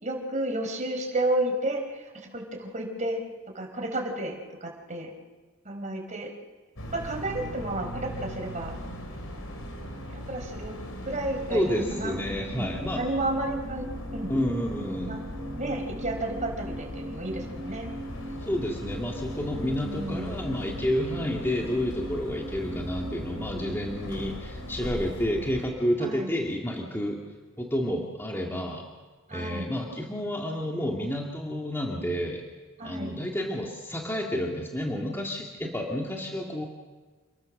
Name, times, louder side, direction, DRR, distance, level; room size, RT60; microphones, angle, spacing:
voice 1, 0.0-3.2 3.5-5.1 5.6-6.3 6.9-8.7 10.1-10.8 11.0-12.7 12.9-14.3 15.1-15.2 15.6-17.9 19.5-20.5 26.0-26.3 29.3-29.7 32.8-33.2, right 1 dB, 35° right, 2 dB, 4.5 m, -32 dB
sound 1, 6.8-25.7, equal, 75° left, 4.5 m, -39 dB
sound 2, 11.1-26.2 26.5-26.6, equal, 15° right, 1.6 m, -41 dB
voice 2, 11.5-13.0 14.3-15.2 18.4-27.2 27.6-28.8 29.3-32.4 32.8-36.7, equal, 10° left, -1 dB, 2.1 m, -30 dB
28.5 x 20.5 x 6.6 m, 1.4 s
head